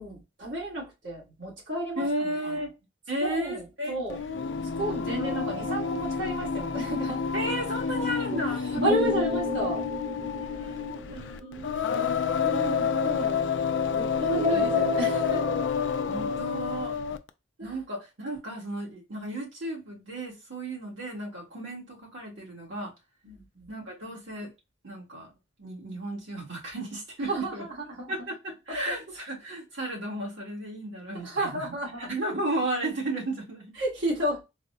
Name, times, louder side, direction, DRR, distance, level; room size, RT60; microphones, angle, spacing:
voice 1, 0.0-2.3 3.2-4.2 4.8-7.2 8.3-9.9 12.4-13.5 13.9-15.4 17.6-17.8 23.2-23.7 27.3-28.1 28.7-28.8 31.2-32.1 33.8-34.4, right 1 dB, 70° right, 1.6 m, -32 dB
voice 2, 2.0-2.7 3.1-4.4 4.9-5.3 7.3-8.8 10.4-11.7 14.5-14.9 16.1-17.0 17.6-22.9 23.7-24.5 24.8-25.3 25.6-27.7 28.1-33.7, right 1 dB, 85° right, 1.8 m, -34 dB
Singing, 4.1-17.3, left 6 dB, 70° left, 0.4 m, -29 dB
sound 1, 5.2-6.8 8.8-11.9 14.3-15.7, left 2 dB, 55° right, 1.6 m, -31 dB
4.0 x 2.2 x 2.7 m
head